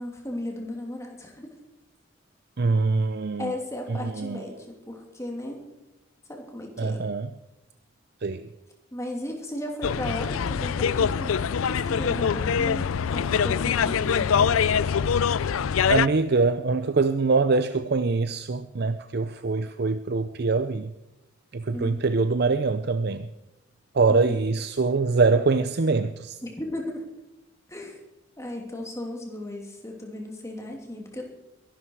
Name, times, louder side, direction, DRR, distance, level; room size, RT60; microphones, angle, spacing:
voice 1, 0.0-1.5 3.4-5.6 6.3-7.1 8.9-12.8 13.1-14.7 21.7-22.1 24.1-24.4 26.4-27.0 27.7-28.0 28.4-31.2, left 1 dB, 15° left, 1 dB, 2.9 m, -35 dB
voice 2, 2.6-3.6 3.9-4.5 6.8-7.3 8.2-8.5 15.9-20.9 21.5-23.3 23.9-26.4, right 4 dB, 50° right, 11 dB, 0.5 m, -24 dB
sound 1, 9.8-16.1, left 7 dB, 85° left, 0.4 m, -24 dB
22.0 x 12.0 x 4.8 m, 0.94 s
head